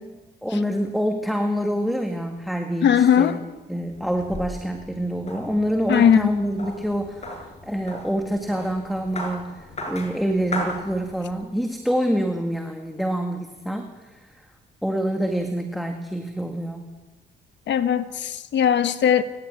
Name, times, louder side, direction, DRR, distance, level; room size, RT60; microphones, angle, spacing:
voice 1, 0.4-3.4 3.7-14.3 14.8-16.9, equal, ahead, 4 dB, 2.0 m, -26 dB
voice 2, 2.8-3.4 5.9-6.3 17.7-19.2, left 9 dB, 65° left, 10 dB, 1.3 m, -19 dB
sound 1, 3.9-11.4, left 1 dB, 35° left, 6.3 m, -37 dB
29.0 x 13.5 x 8.9 m, 1.2 s
cardioid pair, 90°, 20 cm